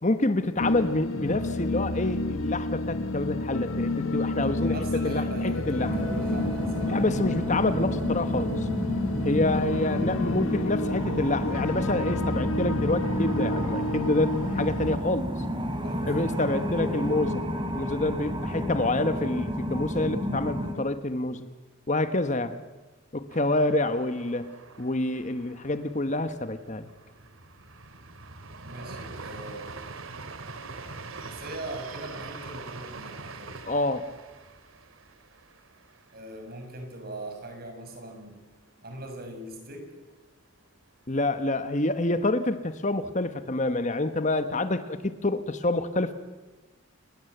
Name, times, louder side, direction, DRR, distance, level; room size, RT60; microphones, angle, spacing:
voice 1, 0.0-4.7 5.0-6.0 6.8-8.7 9.2-15.3 16.1-17.4 17.7-21.5 21.9-22.6 23.1-26.9 33.7-34.1 41.1-46.1, left 2 dB, 35° left, 10 dB, 1.3 m, -27 dB
sound 1, 0.6-15.0, left 2 dB, 80° left, 1.4 m, -30 dB
voice 2, 4.3-7.0 15.8-16.5 28.6-29.7 31.2-33.6 36.1-38.3 38.8-39.9, right 1 dB, 50° right, 4 dB, 6.6 m, -40 dB
sound 2, 5.8-20.7, equal, 25° right, 3.8 m, -31 dB
Two trains passing in opposite direction, 23.3-37.0 37.4-37.5 37.8-38.4, right 3 dB, 85° right, 2.3 m, -44 dB
29.5 x 21.5 x 8.1 m, 1.2 s
head